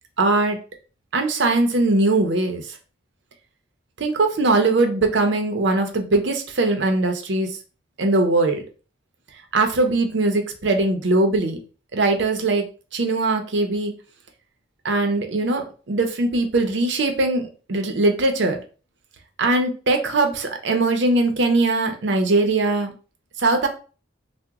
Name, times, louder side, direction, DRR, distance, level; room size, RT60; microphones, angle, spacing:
voice 1, 0.2-0.6 1.1-2.8 4.0-7.6 8.0-8.6 9.5-11.6 11.9-12.6 12.9-13.9 14.8-18.6 19.4-22.9 23.4-23.7, right 2 dB, 70° right, 5 dB, 0.6 m, -21 dB
2.8 x 2.1 x 3.5 m, 0.36 s
head